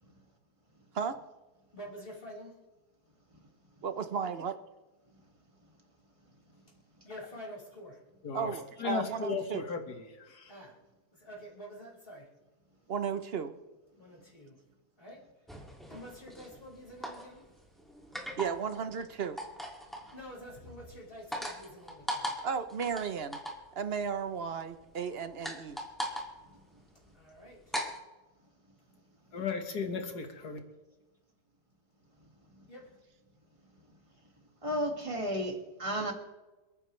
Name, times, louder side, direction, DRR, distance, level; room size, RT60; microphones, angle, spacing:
voice 1, 1.7-2.6 7.0-8.0 10.5-10.8 11.1-12.3 14.0-14.6 15.0-15.3 15.9-17.5 19.9-22.4 27.1-27.8 32.7-33.0, equal, 35° left, -4 dB, 5.8 m, -48 dB
voice 2, 3.8-4.5 8.3-9.7 12.9-13.5 18.4-19.4 22.4-23.4 23.8-25.8, right 6 dB, 45° right, 10 dB, 0.9 m, -34 dB
voice 3, 8.2-10.5 29.3-30.6, left 6 dB, 80° left, 5 dB, 2.2 m, -36 dB
sound 1, 15.5-28.0, equal, ahead, 2.3 m, -41 dB
voice 4, 32.2-32.7 33.7-33.9 34.6-36.1, equal, 20° right, 2 dB, 2.0 m, -35 dB
29.0 x 9.7 x 3.3 m, 1.1 s
omnidirectional pair, 1.7 m